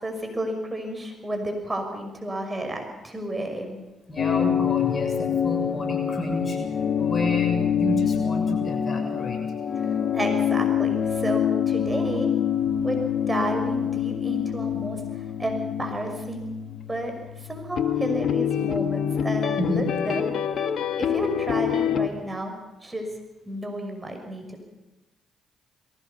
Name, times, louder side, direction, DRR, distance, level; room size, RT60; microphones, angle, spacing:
voice 1, 0.0-3.8 9.8-12.3 12.8-13.0 13.3-15.0 15.4-16.6 16.9-17.1 17.5-20.2 21.0-22.5 22.8-23.1 23.5-24.6, right 1 dB, 20° right, 4 dB, 6.1 m, -31 dB
voice 2, 4.1-6.6 7.0-9.4 19.6-19.8, left 1 dB, 35° left, 4 dB, 6.8 m, -29 dB
sound 1, 4.2-22.1, left 8 dB, 65° left, 1.6 m, -26 dB
22.0 x 17.5 x 7.0 m, 1.1 s
hypercardioid pair, 45°, 0 cm